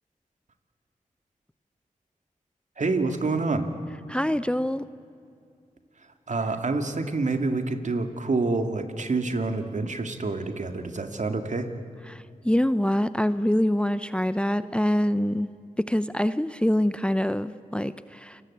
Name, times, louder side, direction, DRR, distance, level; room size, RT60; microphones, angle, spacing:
voice 1, 2.8-3.7 6.3-11.7, right 3 dB, 55° right, 7 dB, 2.3 m, -27 dB
voice 2, 4.1-4.8 12.1-15.5 15.9-18.4, left 1 dB, 5° left, 14 dB, 0.7 m, -25 dB
29.0 x 19.5 x 8.7 m, 2.5 s
cardioid pair, 45°, 15 cm